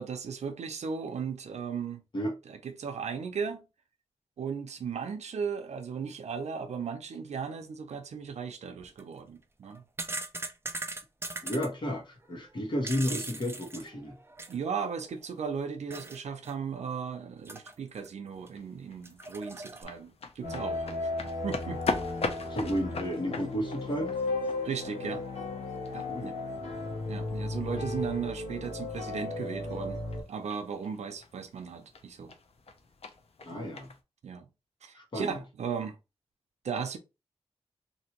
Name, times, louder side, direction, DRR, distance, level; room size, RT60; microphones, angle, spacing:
voice 1, 0.0-2.0 2.5-3.6 4.4-9.8 14.5-20.9 21.4-21.8 24.6-25.3 25.9-26.4 27.1-30.0 30.3-32.3 33.5-33.8 34.2-34.5 34.8-36.0 36.6-37.0, right 6 dB, 85° right, 0.6 m, -36 dB
sound 1, 8.8-9.0 9.6-11.7 12.6-14.7 15.0-15.1 15.9-16.2 16.4-16.5 17.4-18.1 18.5-18.6 19.0-19.8, right 2 dB, 20° right, 0.5 m, -39 dB
voice 2, 11.4-14.2 22.5-24.2 26.1-26.4 33.4-33.9 34.9-35.4, equal, 45° left, 1.2 m, -32 dB
sound 2, 18.3-34.0, left 3 dB, 65° left, 0.6 m, -42 dB
sound 3, 20.4-30.2, left 2 dB, 85° left, 1.3 m, -35 dB
3.0 x 2.6 x 2.9 m
wide cardioid pair, 90°, 11 cm